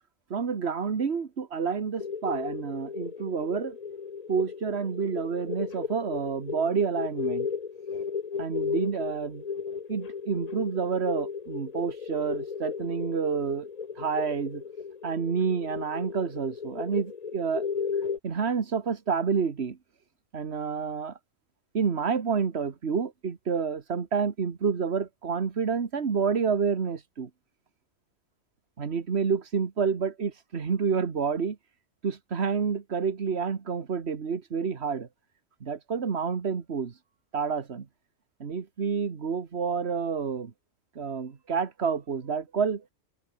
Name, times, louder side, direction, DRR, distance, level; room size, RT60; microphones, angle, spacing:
voice 1, 0.3-3.8 4.3-7.5 8.4-9.4 9.9-13.7 14.0-14.6 15.0-17.6 18.2-19.8 20.3-21.2 21.7-27.3 28.8-31.6 32.0-35.1 35.6-36.9 37.3-37.9 38.4-40.5 41.0-42.8, right 6 dB, 50° right, 1.7 m, -29 dB
sound 1, 2.0-18.2, left 6 dB, 35° left, 0.8 m, -35 dB
omnidirectional pair, 1.4 m